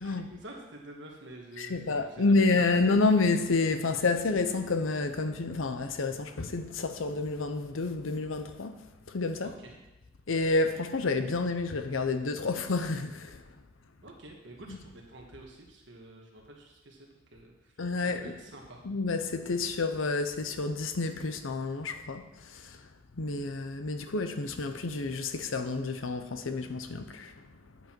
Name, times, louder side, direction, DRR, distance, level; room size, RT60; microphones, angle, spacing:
voice 1, 0.0-2.8 9.4-9.8 14.0-17.7 18.0-18.8, right 2 dB, 65° right, 1.5 m, -48 dB
voice 2, 1.6-8.8 9.1-9.5 10.3-13.4 14.7-14.8 17.8-18.3 18.8-22.8 23.2-27.3, left 3 dB, 80° left, 0.7 m, -29 dB
9.4 x 8.0 x 4.5 m
head